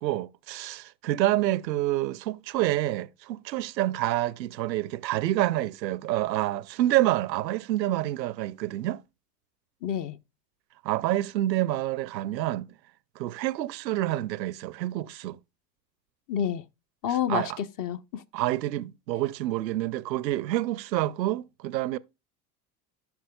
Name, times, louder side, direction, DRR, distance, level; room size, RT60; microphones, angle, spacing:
voice 1, 0.0-9.0 10.8-12.7 13.2-15.4 17.3-17.6 18.3-22.0, right 15 dB, 90° right, 0.6 m, -28 dB
voice 2, 9.8-10.2 16.3-16.6 17.0-18.2, left 9 dB, 40° left, 0.8 m, -29 dB
15.0 x 5.9 x 2.3 m
hypercardioid pair, 80°, 49 cm